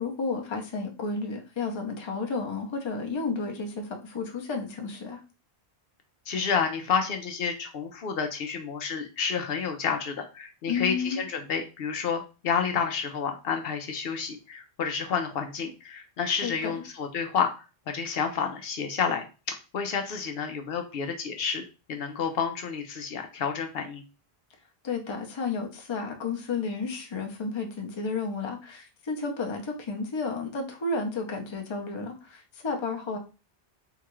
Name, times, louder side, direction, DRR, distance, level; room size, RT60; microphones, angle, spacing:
voice 1, 0.0-5.2 10.7-11.2 16.4-16.8 24.8-33.2, left 4 dB, 35° left, 2 dB, 0.6 m, -32 dB
voice 2, 6.3-21.6 21.9-24.0, left 6 dB, 70° left, 5 dB, 0.7 m, -30 dB
3.7 x 2.3 x 3.0 m, 0.32 s
omnidirectional pair, 1.1 m